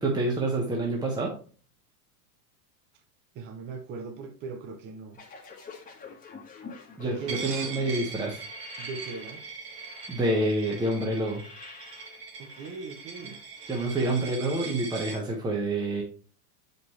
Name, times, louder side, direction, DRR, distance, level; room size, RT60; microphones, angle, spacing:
voice 1, 0.0-1.3 7.0-8.4 10.1-11.4 13.7-16.0, right 2 dB, 10° right, 1.1 m, -27 dB
voice 2, 3.3-5.2 7.0-7.5 8.8-9.4 12.4-13.4, right 4 dB, 25° right, 0.6 m, -39 dB
sound 1, 5.1-13.9, left 5 dB, 15° left, 1.5 m, -48 dB
Coin (dropping), 7.3-15.2, right 5 dB, 85° right, 2.1 m, -41 dB
7.4 x 5.3 x 3.1 m
supercardioid pair, 130°, 46 cm